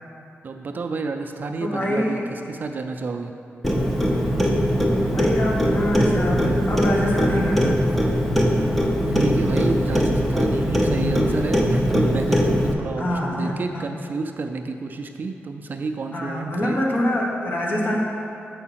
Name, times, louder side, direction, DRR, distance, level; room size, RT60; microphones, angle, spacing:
voice 1, 0.4-3.3 9.1-16.8, right 3 dB, 40° right, 5 dB, 0.3 m, -30 dB
voice 2, 1.6-2.3 5.1-7.9 13.0-13.8 16.1-18.0, left 1 dB, 45° left, -2 dB, 1.1 m, -25 dB
Clock, 3.6-12.7, equal, 5° left, 0.6 m, -21 dB
7.0 x 4.7 x 5.7 m, 2.6 s
wide cardioid pair, 175°, 5 cm